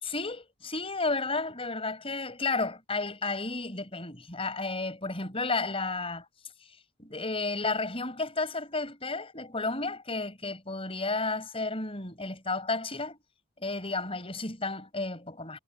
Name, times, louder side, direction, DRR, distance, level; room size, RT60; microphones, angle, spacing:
voice 1, 0.0-6.3 6.6-6.7 7.0-13.2 13.6-15.6, left 3 dB, 30° left, 4.9 m, -32 dB
head